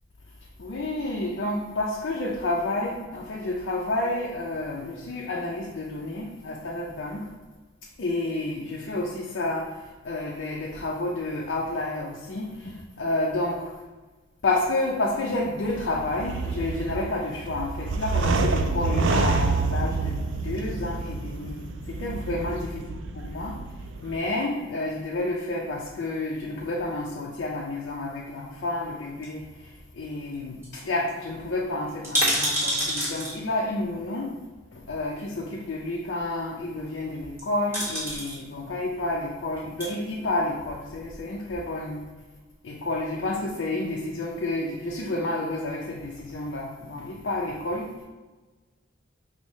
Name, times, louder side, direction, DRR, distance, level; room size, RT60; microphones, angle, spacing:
voice 1, 0.6-7.3 8.0-13.7 14.4-22.9 23.1-23.6 24.0-34.4 34.7-42.0 42.6-47.9, left 2 dB, 65° left, -2 dB, 0.4 m, -30 dB
sound 1, 15.7-24.2, right 3 dB, 70° right, 0.3 m, -28 dB
sound 2, 29.2-30.0 30.3-30.4 30.6-30.8 31.1-31.2 31.9-33.3 34.5-34.6 37.2-37.4 37.7-38.4 39.5-39.9 40.6-41.3 41.5-41.6, equal, 15° right, 1.2 m, -28 dB
5.3 x 2.0 x 3.0 m, 1.2 s
head